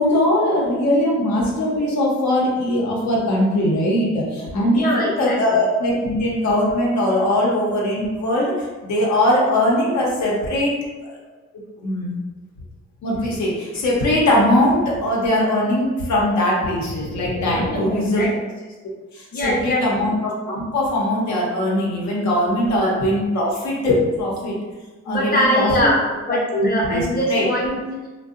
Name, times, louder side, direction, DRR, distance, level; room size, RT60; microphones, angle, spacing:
voice 1, 0.0-10.7 11.1-11.2 11.8-12.1 13.0-18.3 19.1-24.6 25.0-25.7 26.5-27.5, left 1 dB, 70° left, -4 dB, 0.8 m, -20 dB
voice 2, 4.7-5.4 17.6-18.3 19.3-19.9 22.6-22.9 25.1-28.1, equal, 30° left, -3 dB, 0.7 m, -22 dB
2.6 x 2.2 x 2.4 m, 1.2 s
cardioid pair, 90°, 30 cm